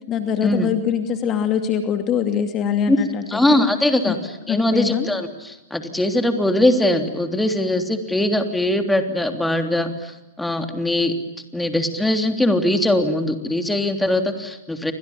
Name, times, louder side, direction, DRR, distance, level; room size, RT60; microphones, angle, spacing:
voice 1, 0.1-3.7 4.0-4.2 4.5-5.1, left 8 dB, 30° left, 7 dB, 2.5 m, -23 dB
voice 2, 3.3-4.2 4.5-10.1 10.4-11.1 11.5-14.9, left 1 dB, 5° left, 6 dB, 3.3 m, -21 dB
30.0 x 25.5 x 7.2 m, 0.95 s
figure-of-eight pair, 105°, 0 cm